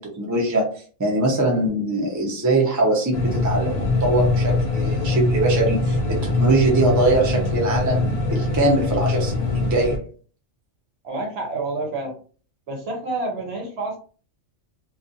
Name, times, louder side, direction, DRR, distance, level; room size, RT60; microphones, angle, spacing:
voice 1, 0.0-10.1, right 2 dB, 20° right, -1 dB, 0.4 m, -22 dB
sound 1, 3.1-10.0, left 2 dB, 85° left, 0.3 m, -23 dB
voice 2, 11.0-12.2 12.7-14.0, right 2 dB, 60° right, 1 dB, 0.9 m, -28 dB
2.5 x 2.4 x 2.5 m, 0.41 s
omnidirectional pair, 1.3 m